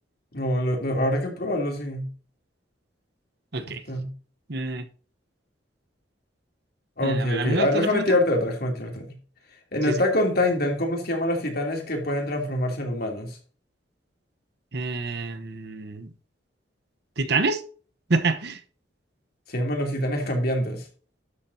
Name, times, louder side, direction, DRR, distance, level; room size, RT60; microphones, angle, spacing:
voice 1, 0.3-2.1 3.9-4.1 7.0-9.1 9.7-13.4 19.5-20.8, left 1 dB, 55° left, 3.0 m, -25 dB
voice 2, 4.5-4.8 7.0-8.1 9.9-10.0 14.7-16.1 17.2-17.6 18.1-18.6, right 3 dB, 60° right, 1.1 m, -27 dB
12.5 x 7.4 x 2.8 m
head